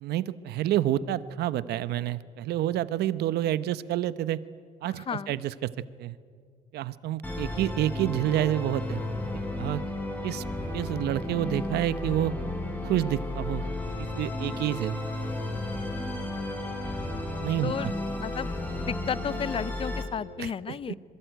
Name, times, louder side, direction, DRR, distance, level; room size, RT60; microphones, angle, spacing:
voice 1, 0.0-4.4 4.8-5.7 6.0-6.2 6.7-9.0 9.6-9.8 10.2-10.4 10.7-12.3 12.8-13.7 14.0-15.0 17.4-17.9 20.4-20.8, right 13 dB, 75° right, 15 dB, 1.0 m, -28 dB
voice 2, 4.8-5.4 17.1-17.2 17.6-18.5 18.9-21.0, left 7 dB, 35° left, 19 dB, 0.7 m, -33 dB
Musical instrument, 7.2-20.0, left 1 dB, 10° left, 4.9 m, -33 dB
26.5 x 22.5 x 9.3 m, 2.1 s
cardioid pair, 110°, 17 cm